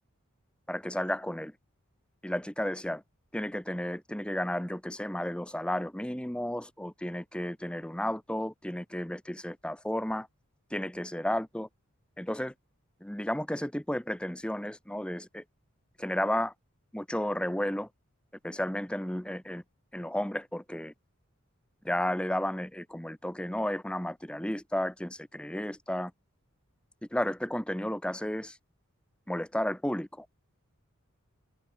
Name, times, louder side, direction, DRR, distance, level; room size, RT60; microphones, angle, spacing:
voice 1, 0.7-1.5 2.2-3.0 3.3-10.3 10.7-11.7 12.2-12.5 13.0-15.4 16.0-16.5 16.9-17.9 18.4-19.6 19.9-20.9 21.8-26.1 27.1-28.6 29.3-30.3, left 1 dB, 5° left, 0.9 m, -33 dB
head